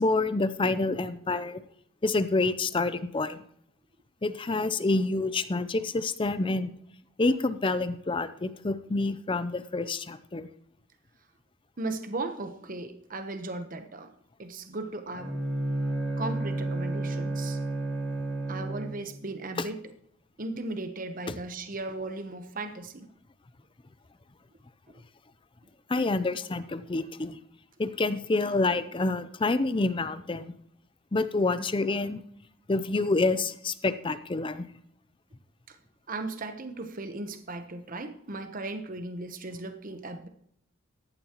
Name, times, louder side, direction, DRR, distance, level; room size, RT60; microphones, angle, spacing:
voice 1, 0.0-1.6 2.0-3.4 4.2-6.7 7.2-10.5 25.9-27.4 27.8-30.5 31.1-32.2 32.7-34.7, left 3 dB, 25° left, 13 dB, 0.5 m, -27 dB
voice 2, 11.8-14.1 14.4-15.3 16.2-17.6 18.5-19.8 20.4-23.1 35.7-35.8 36.1-40.3, right 2 dB, 40° right, 8 dB, 1.0 m, -36 dB
Bowed string instrument, 15.1-19.2, right 2 dB, 5° left, 2.6 m, -31 dB
14.0 x 11.0 x 3.0 m, 0.70 s
head